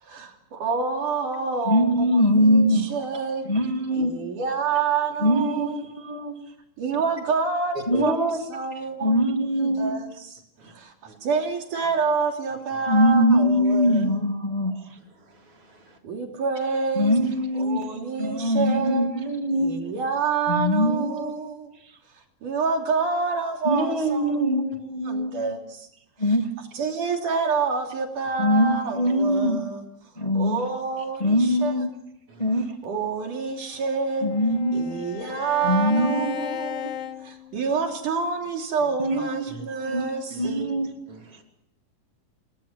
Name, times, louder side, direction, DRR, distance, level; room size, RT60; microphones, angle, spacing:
voice 1, 0.0-3.5 3.9-5.9 6.8-7.8 8.0-8.1 8.5-9.2 9.6-10.4 10.7-14.2 16.0-17.1 17.5-19.1 19.5-21.8 22.1-24.5 25.0-25.9 26.2-26.4 26.7-29.9 30.3-31.7 32.8-34.3 34.7-36.9 37.2-40.7, right 5 dB, 65° right, 3 dB, 4.5 m, -28 dB
voice 2, 1.7-2.8 3.5-4.1 5.2-6.3 7.9-8.4 9.0-9.9 12.9-14.8 17.0-17.8 18.2-19.7 20.5-21.4 23.6-25.3 26.2-26.5 28.4-29.6 30.2-30.6 31.2-31.9 32.4-32.7 34.2-34.9 35.6-36.5 36.8-37.0 39.0-39.6 39.9-40.1 40.4-40.9, equal, 15° left, 4 dB, 2.0 m, -22 dB
voice 3, 15.2-16.0 17.2-17.3 32.3-32.5 39.5-39.7 40.3-40.5 41.1-41.4, right 1 dB, 40° right, 2 dB, 4.8 m, -40 dB
Bowed string instrument, 33.6-38.1, left 10 dB, 60° left, 1.7 m, -36 dB
29.0 x 21.0 x 7.5 m, 0.78 s
omnidirectional pair, 3.9 m